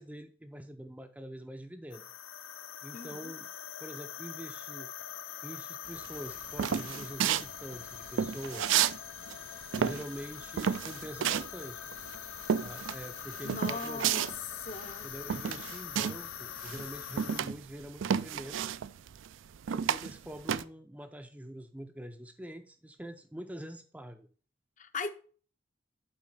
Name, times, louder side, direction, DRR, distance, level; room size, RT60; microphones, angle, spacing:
voice 1, 0.0-2.0 2.8-3.5 3.8-4.9 5.4-8.8 9.7-11.8 12.6-14.0 15.0-18.6 19.7-24.3, equal, 5° right, 0.5 m, -45 dB
sound 1, 1.9-17.4, left 10 dB, 85° left, 0.6 m, -44 dB
voice 2, 2.9-3.3 13.4-14.3 14.7-15.1 24.8-25.1, left 4 dB, 40° left, 0.6 m, -39 dB
sound 2, 6.0-9.0 9.3-16.3 16.6-20.6, right 8 dB, 70° right, 0.4 m, -31 dB
7.6 x 4.6 x 5.4 m
head